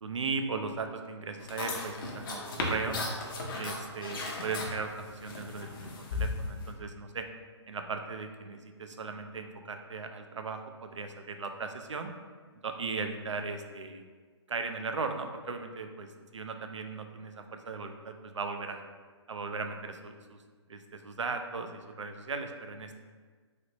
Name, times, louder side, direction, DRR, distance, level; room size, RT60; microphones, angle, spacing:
voice 1, 0.0-3.0 3.6-7.3 7.7-12.1 12.6-14.0 14.5-18.8 19.3-20.4 20.7-22.9, right 4 dB, 85° right, 6 dB, 0.4 m, -37 dB
sound 1, 1.4-6.7, left 3 dB, 45° left, 0.6 m, -36 dB
3.0 x 2.8 x 2.9 m, 1.5 s
figure-of-eight pair, 130°, 15 cm